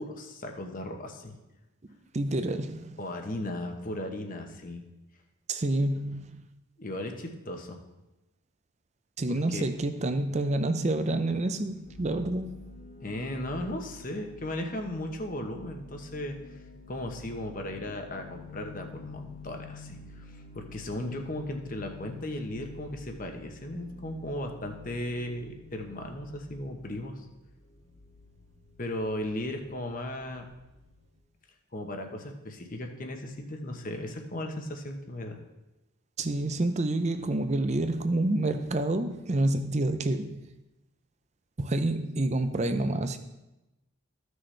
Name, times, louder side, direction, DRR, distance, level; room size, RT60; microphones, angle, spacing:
voice 1, 0.0-1.4 3.0-4.8 6.8-7.8 9.3-9.7 13.0-16.4 16.9-27.2 28.8-30.5 31.7-35.4, left 1 dB, 40° left, 4 dB, 1.0 m, -36 dB
voice 2, 2.1-2.9 5.5-6.3 9.2-12.6 36.2-40.4 41.6-43.2, right 2 dB, 30° right, 9 dB, 0.5 m, -28 dB
sound 1, 11.8-31.2, left 3 dB, 75° left, 2.7 m, -49 dB
14.0 x 6.3 x 3.3 m, 1.0 s
head